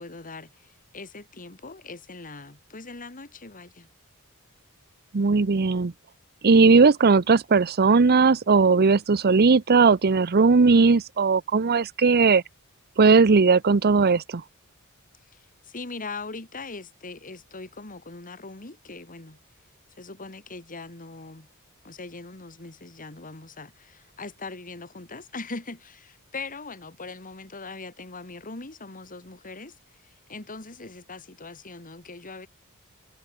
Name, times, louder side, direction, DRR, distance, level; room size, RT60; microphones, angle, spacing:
voice 1, 0.0-3.9 15.6-19.4 20.0-21.5 21.8-29.8 30.3-32.5, left 3 dB, 40° left, 2.4 m, -40 dB
voice 2, 5.1-5.9 6.4-12.4 13.0-14.4, right 4 dB, 45° right, 0.7 m, -18 dB
head